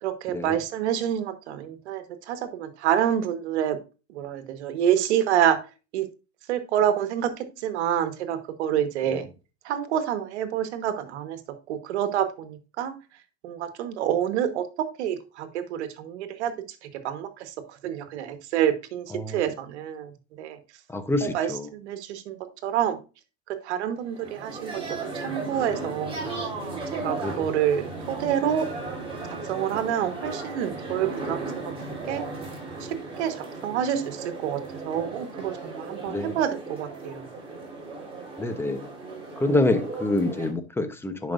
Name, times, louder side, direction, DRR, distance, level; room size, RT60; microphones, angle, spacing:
voice 1, 0.0-3.8 4.1-5.6 5.9-6.1 6.5-9.3 9.6-11.4 11.7-12.9 13.4-16.5 16.8-17.5 17.8-20.1 20.4-20.6 21.2-23.0 23.5-26.2 26.9-28.7 29.3-31.7 32.0-32.2 32.8-37.3, right 10 dB, 70° right, 9 dB, 1.4 m, -28 dB
voice 2, 20.9-21.7 27.2-27.4 36.1-36.4 38.4-38.9 39.4-41.3, left 2 dB, 5° left, 9 dB, 0.9 m, -26 dB
sound 1, 24.0-40.5, right 3 dB, 15° right, 3.4 m, -36 dB
10.5 x 5.4 x 2.6 m, 0.31 s
hypercardioid pair, 115°, 35 cm